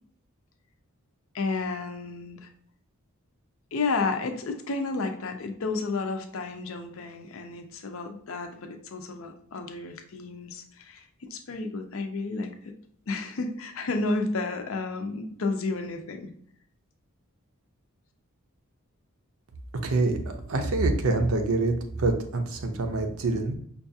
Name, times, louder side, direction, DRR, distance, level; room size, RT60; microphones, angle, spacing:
voice 1, 1.3-2.5 3.7-12.5 13.1-16.3, left 3 dB, 65° left, 5 dB, 0.5 m, -31 dB
voice 2, 19.8-20.2 20.5-21.7 22.0-23.6, right 2 dB, 75° right, 5 dB, 0.6 m, -25 dB
5.3 x 2.4 x 2.6 m, 0.63 s
head